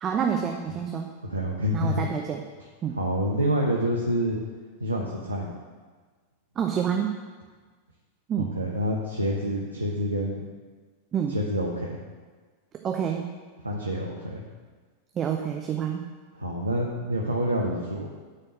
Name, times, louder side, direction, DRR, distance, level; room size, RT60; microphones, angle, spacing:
voice 1, 0.0-1.1 1.7-2.4 2.8-3.0 6.6-7.2 8.3-8.5 11.1-11.4 12.8-13.3 15.1-16.1, right 8 dB, 25° right, 2 dB, 0.7 m, -28 dB
voice 2, 1.2-2.1 3.0-4.4 4.8-5.5 8.4-10.4 11.3-12.0 13.6-14.4 16.3-18.1, equal, 80° right, -1 dB, 1.0 m, -27 dB
9.6 x 4.5 x 7.5 m, 1.4 s
figure-of-eight pair, 90°, 0 cm